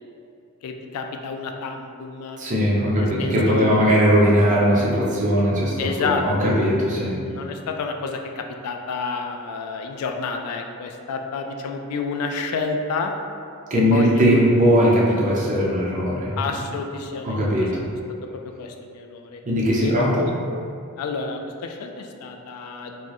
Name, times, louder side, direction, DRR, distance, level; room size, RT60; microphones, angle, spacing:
voice 1, 0.6-2.4 2.9-3.8 5.8-6.5 7.3-13.1 13.9-14.2 16.4-17.8 18.4-19.4 19.8-20.3 21.0-23.1, left 4 dB, 75° left, 4 dB, 0.3 m, -29 dB
voice 2, 2.4-7.2 13.7-16.4 17.2-17.9 19.4-20.3, equal, 35° right, -5 dB, 0.6 m, -19 dB
4.3 x 2.0 x 2.9 m, 2.4 s
head